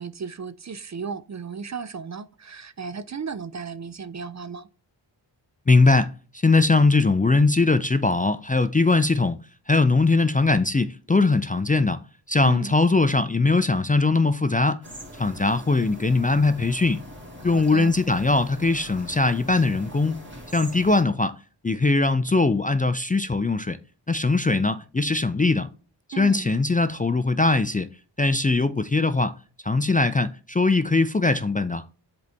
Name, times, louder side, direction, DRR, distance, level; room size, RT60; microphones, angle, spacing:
voice 1, 0.0-4.7 12.4-12.8 17.4-17.9 26.1-26.5, right 5 dB, 40° right, 0.5 m, -35 dB
voice 2, 5.7-9.4 9.7-12.0 12.3-14.8 15.2-17.0 17.4-20.2 20.5-21.3 21.6-23.8 24.1-25.7 26.2-27.9 28.2-29.3 29.6-31.8, left 3 dB, 20° left, 0.4 m, -21 dB
sound 1, 14.8-21.0, equal, 25° right, 2.3 m, -42 dB
7.7 x 4.0 x 3.4 m
wide cardioid pair, 100°, 45 cm